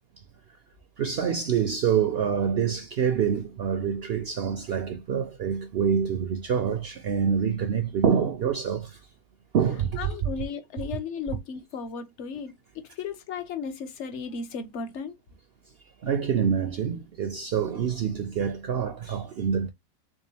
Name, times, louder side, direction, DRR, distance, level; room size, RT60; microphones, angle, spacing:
voice 1, 1.0-9.0 9.5-10.1 16.0-19.7, right 7 dB, 60° right, 0.6 m, -26 dB
voice 2, 10.0-15.1, left 5 dB, 60° left, 1.0 m, -35 dB
3.6 x 3.6 x 2.7 m
omnidirectional pair, 1.5 m